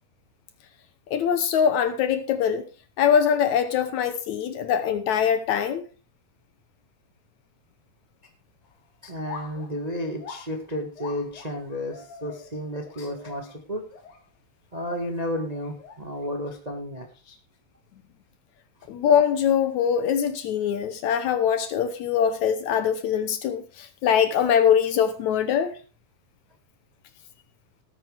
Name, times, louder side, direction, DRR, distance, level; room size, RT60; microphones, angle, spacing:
voice 1, 1.1-2.6 3.0-5.8 18.9-25.7, left 8 dB, 70° left, 1.9 m, -23 dB
sound 1, 8.6-8.9 9.2-14.3 14.9-16.3, left 5 dB, 85° left, 3.8 m, -45 dB
voice 2, 9.0-13.8 14.7-17.4, equal, 70° right, 0.4 m, -32 dB
19.0 x 9.1 x 3.4 m
omnidirectional pair, 4.0 m